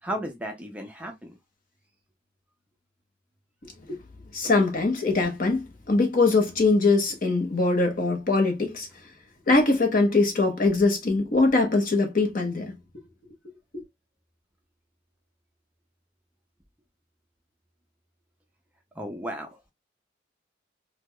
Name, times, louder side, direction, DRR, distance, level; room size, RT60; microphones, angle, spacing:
voice 1, 0.0-1.4 19.0-19.7, equal, 5° right, 0.4 m, -34 dB
voice 2, 4.3-8.9 9.5-12.7 13.7-13.8, left 3 dB, 45° left, 0.9 m, -22 dB
4.5 x 2.3 x 2.2 m
head